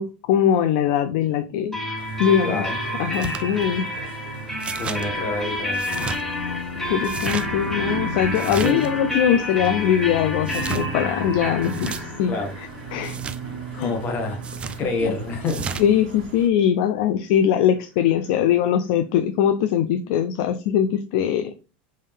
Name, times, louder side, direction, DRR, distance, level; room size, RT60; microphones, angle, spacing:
voice 1, 0.0-1.8 2.2-2.6 3.0-4.1 6.9-12.4 12.9-13.2 13.8-13.9 15.0-15.1 15.8-21.5, left 9 dB, 65° left, 0.3 m, -21 dB
sound 1, 1.7-15.3, left 1 dB, 5° left, 1.0 m, -30 dB
sound 2, 2.0-16.5, right 5 dB, 75° right, 1.3 m, -37 dB
voice 2, 2.4-2.8 4.0-4.1 4.7-5.9 8.6-8.9 12.3-12.5 13.7-14.4 14.8-15.7, left 3 dB, 35° left, 0.8 m, -28 dB
sound 3, 3.1-3.4 4.6-5.0 5.7-6.2 7.0-7.5 8.3-8.9 10.4-10.9 11.6-12.0 13.0-13.4 14.4-14.8 15.5-15.9, right 5 dB, 20° right, 0.3 m, -32 dB
3.4 x 2.6 x 3.4 m
supercardioid pair, 130°, 5 cm